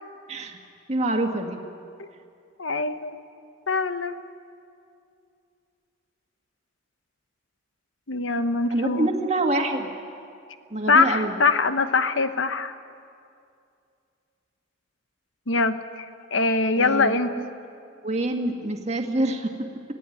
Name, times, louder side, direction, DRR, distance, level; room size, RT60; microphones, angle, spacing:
voice 1, 0.3-0.6 0.9-1.6 8.7-9.9 10.7-11.4 16.8-17.5 18.0-19.5, right 2 dB, 35° right, 2 dB, 1.9 m, -26 dB
voice 2, 2.6-3.2 3.7-4.2 8.1-9.1 10.9-12.7 15.5-16.1 16.3-17.3, left 4 dB, 80° left, 10 dB, 1.1 m, -23 dB
25.5 x 16.0 x 9.3 m, 2.4 s
head